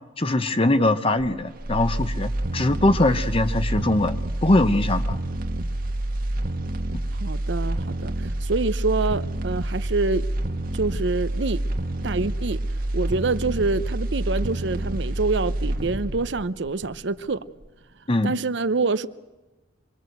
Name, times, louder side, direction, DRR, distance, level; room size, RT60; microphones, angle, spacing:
voice 1, 0.2-5.2 18.1-18.3, left 2 dB, 30° left, 1.0 m, -22 dB
sound 1, 1.2-17.3 17.6-17.7, right 1 dB, 50° right, 1.4 m, -28 dB
voice 2, 7.2-10.3 10.7-11.6 12.0-12.6 12.9-17.4 18.2-19.1, right 3 dB, 65° right, 0.7 m, -26 dB
26.0 x 22.0 x 7.9 m
head